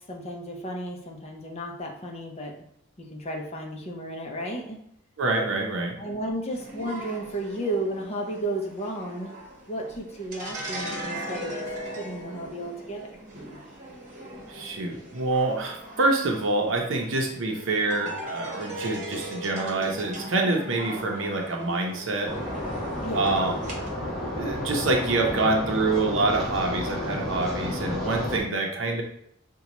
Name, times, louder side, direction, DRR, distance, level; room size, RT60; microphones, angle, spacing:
voice 1, 0.1-2.5 3.0-4.8 6.0-9.3 9.7-11.7 12.0-13.1 23.0-23.3, right 1 dB, 30° left, 1 dB, 0.6 m, -33 dB
voice 2, 5.2-5.9 14.5-22.3 23.1-23.5 24.3-29.0, right 2 dB, 65° right, 1 dB, 0.6 m, -26 dB
sound 1, 6.5-23.9, right 1 dB, 40° right, 1.0 m, -39 dB
sound 2, 22.3-28.4, left 1 dB, ahead, 1.0 m, -31 dB
5.2 x 2.2 x 2.9 m, 0.74 s
head